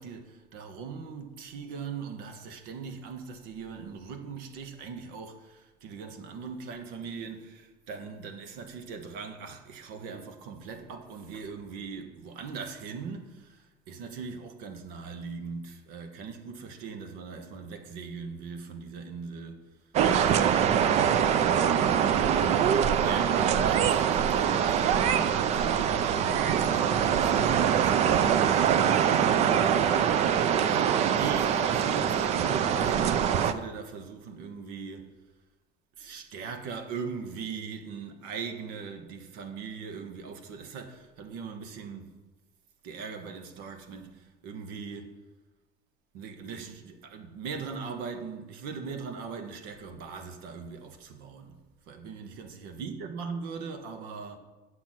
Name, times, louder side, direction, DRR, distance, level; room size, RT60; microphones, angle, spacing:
voice 1, 0.0-19.8 20.2-21.1 22.3-28.8 29.6-35.1 36.0-42.1 42.8-45.1 46.1-51.6 51.9-54.4, right 5 dB, 75° right, 1.4 m, -40 dB
sound 1, 19.9-33.5, right 8 dB, 40° right, 0.5 m, -24 dB
8.1 x 6.1 x 7.5 m
cardioid pair, 160°, 17 cm